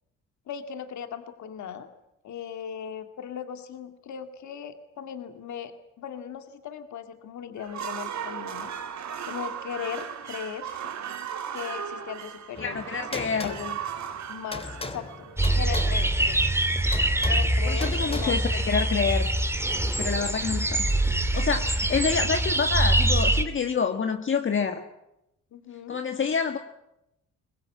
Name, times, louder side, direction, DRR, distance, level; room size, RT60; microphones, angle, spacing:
voice 1, 0.5-1.9 2.2-5.7 6.0-8.7 9.2-10.9 11.5-12.8 13.1-13.8 14.3-16.5 17.3-18.4 25.5-26.0, left 8 dB, 70° left, 8 dB, 2.1 m, -38 dB
sound 1, 7.6-15.7, right 8 dB, 65° right, 2.5 m, -37 dB
sound 2, 12.5-20.0, left 2 dB, 20° left, 3.2 m, -40 dB
voice 2, 12.6-13.5 17.7-19.3 20.0-20.9 21.1-24.8 25.9-26.6, left 6 dB, 40° left, 5 dB, 1.7 m, -27 dB
sound 3, 15.4-23.4, right 1 dB, 10° right, 2.5 m, -24 dB
23.5 x 19.5 x 8.6 m, 0.86 s
cardioid pair, 90°, 30 cm